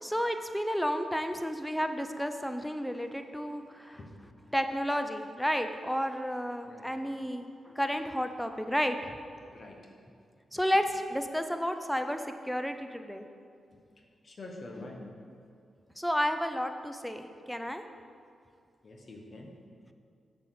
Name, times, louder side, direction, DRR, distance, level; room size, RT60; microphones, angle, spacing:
voice 1, 0.0-4.0 4.5-9.1 10.5-13.3 16.0-17.8, equal, 5° left, 7 dB, 0.5 m, -31 dB
voice 2, 6.7-7.2 9.4-9.9 10.5-10.6 14.2-15.1 18.8-19.5, left 2 dB, 45° left, 1 dB, 1.2 m, -46 dB
7.2 x 4.2 x 6.6 m, 2.3 s
cardioid pair, 65°, 0 cm